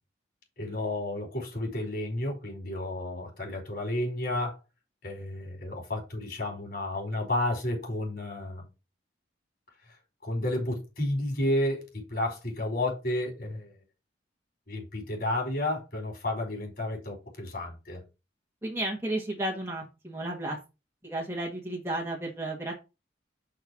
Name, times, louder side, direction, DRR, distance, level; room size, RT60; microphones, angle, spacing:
voice 1, 0.6-4.6 5.0-8.6 10.2-13.8 14.7-18.0, left 1 dB, 55° left, 4.6 m, -31 dB
voice 2, 18.6-20.6 21.0-22.7, right 1 dB, 15° right, 1.6 m, -33 dB
6.1 x 4.6 x 6.1 m
head